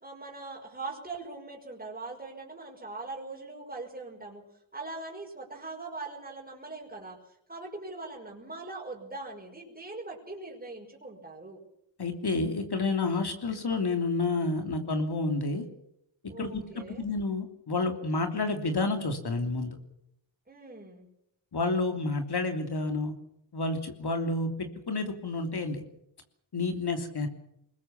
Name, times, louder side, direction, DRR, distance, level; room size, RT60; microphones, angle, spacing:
voice 1, 0.0-4.4 4.7-7.2 7.5-11.6 16.3-17.0 20.5-21.1, right 3 dB, 20° right, -2 dB, 5.4 m, -41 dB
voice 2, 12.0-15.7 16.4-19.8 21.5-23.1 23.5-25.8 26.5-27.3, left 3 dB, 50° left, 5 dB, 3.2 m, -30 dB
23.0 x 20.5 x 7.3 m, 0.77 s
cardioid pair, 75°, 49 cm